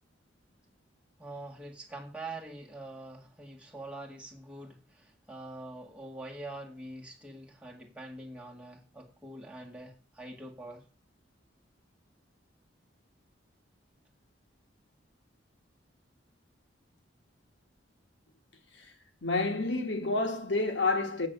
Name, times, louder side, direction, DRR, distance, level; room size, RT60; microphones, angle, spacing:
voice 1, 1.2-10.8, right 2 dB, 5° right, 2.0 m, -44 dB
voice 2, 19.2-21.3, left 3 dB, 70° left, 1.5 m, -29 dB
8.1 x 6.7 x 6.6 m
head